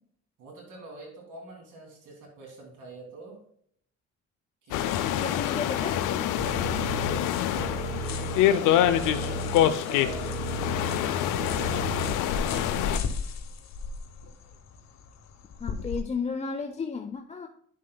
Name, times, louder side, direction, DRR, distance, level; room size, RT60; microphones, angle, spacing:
voice 1, 0.4-3.4 4.6-5.5 6.8-7.9 8.3-10.4 10.7-13.0, right 2 dB, 85° right, 0 dB, 2.8 m, -45 dB
sound 1, 4.7-13.0, left 11 dB, 85° left, 0.5 m, -26 dB
sound 2, 4.7-16.0, left 5 dB, 60° left, 1.0 m, -39 dB
voice 2, 5.2-6.4 15.6-17.5, left 5 dB, 20° left, 5 dB, 0.5 m, -33 dB
sound 3, 6.4-12.1, right 3 dB, 40° right, 1.1 m, -35 dB
9.5 x 7.3 x 2.2 m, 0.67 s
cardioid pair, 90°, 30 cm